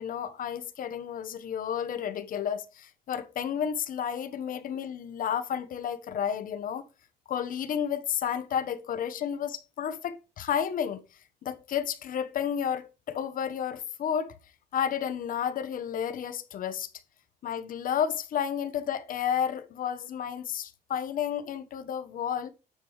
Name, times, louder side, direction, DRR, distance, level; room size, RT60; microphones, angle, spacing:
voice 1, 0.0-6.9 7.3-11.0 11.4-14.4 14.7-16.9 17.4-22.5, left 8 dB, 55° left, 1.2 m, -31 dB
9.5 x 6.9 x 3.2 m
cardioid pair, 110°, 17 cm